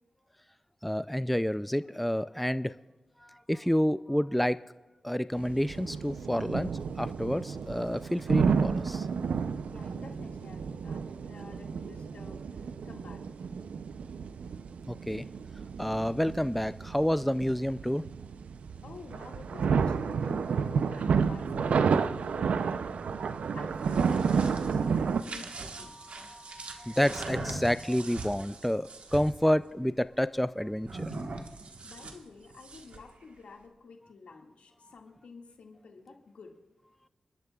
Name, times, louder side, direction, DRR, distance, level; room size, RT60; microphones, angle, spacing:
voice 1, 0.8-2.7 3.2-4.6 5.0-9.1 14.9-15.3 15.8-18.1 25.9-31.1, equal, 5° left, 14 dB, 0.3 m, -29 dB
sound 1, 5.4-25.2, right 6 dB, 90° right, 0.5 m, -31 dB
voice 2, 9.7-13.5 18.8-23.0 23.3-26.0 31.8-36.6, left 4 dB, 85° left, 2 dB, 1.9 m, -50 dB
sound 2, 23.6-29.4 30.8-33.1, right 3 dB, 70° right, 1.3 m, -41 dB
28.0 x 12.0 x 2.3 m, 1.1 s
cardioid pair, 70°, 2 cm